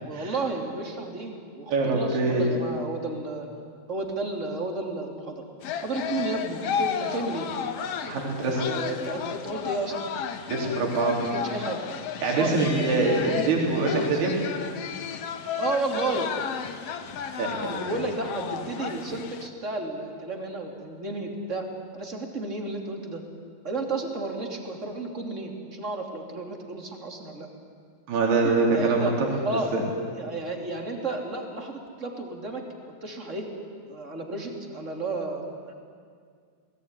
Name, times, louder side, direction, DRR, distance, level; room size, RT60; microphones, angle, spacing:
voice 1, 0.0-3.5 3.9-5.5 5.8-7.5 8.4-10.0 10.6-10.8 11.3-11.8 12.3-13.5 13.8-14.2 15.6-16.3 17.6-23.2 23.6-27.5 28.4-29.1 29.4-29.8 30.1-33.5 33.9-35.7, right 2 dB, 20° right, 2 dB, 2.7 m, -32 dB
voice 2, 1.7-2.5 8.1-8.6 10.5-11.2 12.2-14.3 17.4-17.8 28.1-29.3 29.7-29.8, right 3 dB, 75° right, 0 dB, 5.8 m, -24 dB
sound 1, 5.6-19.5, left 8 dB, 80° left, 1.4 m, -33 dB
sound 2, 12.6-14.8, left 1 dB, 60° left, 8.7 m, -44 dB
29.5 x 20.0 x 9.8 m, 2.1 s
omnidirectional pair, 4.7 m